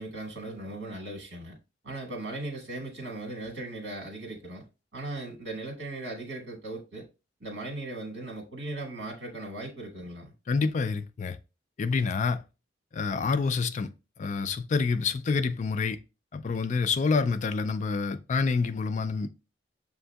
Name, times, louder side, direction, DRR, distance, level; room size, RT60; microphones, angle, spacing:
voice 1, 0.0-1.5 1.8-4.6 4.9-7.0 7.4-10.3, right 2 dB, 85° right, 1.5 m, -38 dB
voice 2, 10.5-11.4 11.8-12.4 12.9-13.9 14.2-16.0 16.3-19.3, left 4 dB, 40° left, 0.3 m, -27 dB
6.6 x 2.6 x 2.2 m
head